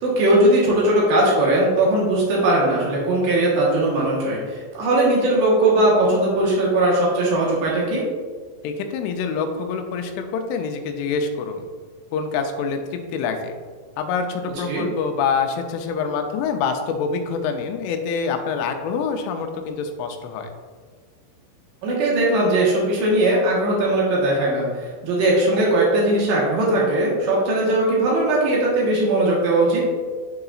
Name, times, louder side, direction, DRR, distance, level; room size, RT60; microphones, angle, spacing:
voice 1, 0.0-8.0 14.7-14.8 21.8-29.9, right 1 dB, 70° right, -4 dB, 2.1 m, -19 dB
voice 2, 8.6-11.7 12.1-13.5 14.0-20.5, left 5 dB, 85° left, 5 dB, 3.1 m, -26 dB
10.5 x 3.9 x 2.4 m, 1.5 s
omnidirectional pair, 5.5 m